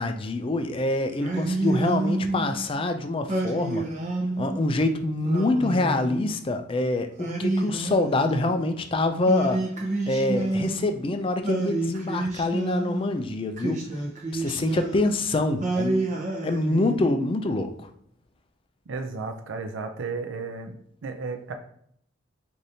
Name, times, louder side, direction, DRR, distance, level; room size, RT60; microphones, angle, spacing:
voice 1, 0.0-3.8 4.4-9.6 10.1-13.8 14.3-16.0 16.4-17.9, left 2 dB, 25° left, 7 dB, 0.3 m, -25 dB
Singing, 1.2-2.6 3.3-4.6 5.2-6.5 7.2-8.7 9.3-11.0 11.4-13.1 13.6-15.2 15.6-17.2, right 2 dB, 35° right, 0.7 m, -29 dB
voice 2, 18.9-20.8 21.0-21.5, right 4 dB, 65° right, 6 dB, 0.4 m, -33 dB
4.8 x 2.6 x 2.7 m, 0.68 s
head